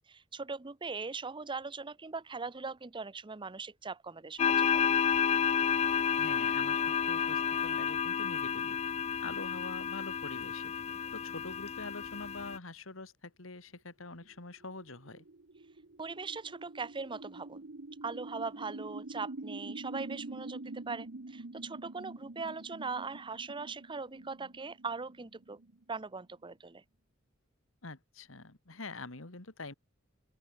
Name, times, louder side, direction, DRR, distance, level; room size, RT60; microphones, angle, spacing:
voice 1, 0.1-4.9 16.0-17.6 18.0-25.6 25.9-26.8, right 4 dB, 25° right, 0.8 m, -40 dB
sound 1, 4.4-12.6, left 7 dB, 30° left, 0.3 m, -31 dB
voice 2, 6.2-8.8 9.2-10.7 11.1-15.2 27.8-29.7, left 3 dB, 80° left, 2.4 m, -45 dB
sound 2, 14.2-26.3, right 2 dB, 60° right, 1.1 m, -46 dB
open air
head